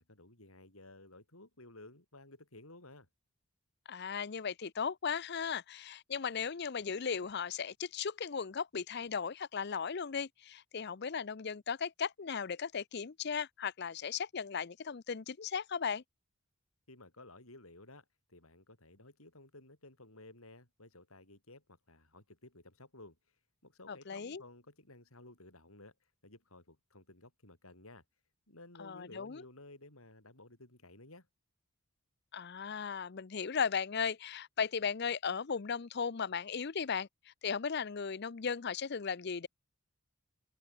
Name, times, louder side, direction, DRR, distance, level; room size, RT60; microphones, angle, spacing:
voice 1, 0.0-3.1 16.9-23.2 23.6-25.9 26.2-28.0 28.5-31.3, left 2 dB, 80° left, 7.9 m, -55 dB
voice 2, 3.9-16.0 23.9-24.4 28.8-29.4 32.3-39.5, left 6 dB, 50° left, 0.6 m, -36 dB
head